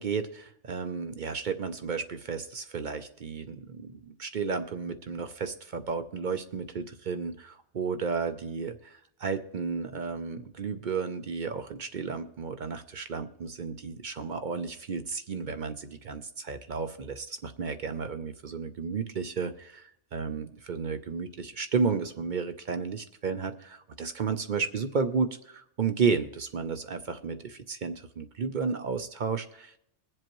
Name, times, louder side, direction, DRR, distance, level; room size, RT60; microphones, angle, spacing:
voice 1, 0.0-29.8, right 5 dB, 50° right, 8 dB, 0.7 m, -33 dB
22.0 x 7.7 x 3.0 m, 0.77 s
omnidirectional pair, 1.2 m